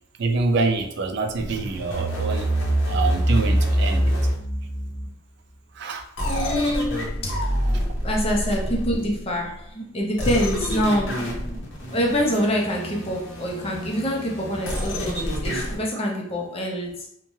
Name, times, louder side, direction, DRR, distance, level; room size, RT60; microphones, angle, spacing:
voice 1, 0.2-2.5 2.9-4.1 5.8-6.0, right 3 dB, 60° right, 4 dB, 0.4 m, -25 dB
sound 1, 1.3-5.1 6.2-9.2 10.2-15.8, equal, 75° left, 0.8 m, -26 dB
voice 2, 6.2-7.5 8.0-11.4 11.9-17.1, equal, 30° left, -1 dB, 0.6 m, -26 dB
3.1 x 2.2 x 2.6 m, 0.71 s
head